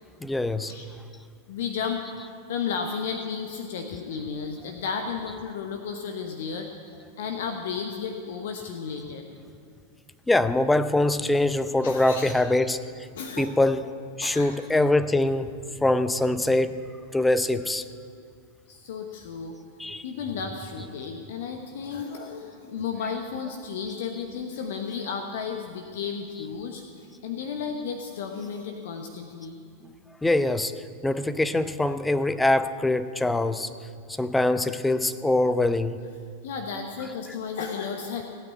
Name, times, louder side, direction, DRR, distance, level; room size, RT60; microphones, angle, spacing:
voice 1, 0.2-0.7 10.3-13.1 13.4-13.9 14.2-16.8 17.1-17.8 19.8-20.1 23.0-23.1 30.2-30.7 31.0-33.7 34.2-36.0 37.0-37.4, left 2 dB, 5° left, 11 dB, 0.6 m, -23 dB
voice 2, 1.5-2.0 2.5-6.7 7.2-9.3 11.8-12.3 13.1-13.5 14.2-14.5 18.7-19.6 20.0-26.8 27.2-29.6 36.4-38.2, left 6 dB, 55° left, 4 dB, 1.1 m, -33 dB
17.5 x 9.3 x 8.0 m, 2.2 s
figure-of-eight pair, 90°, 0 cm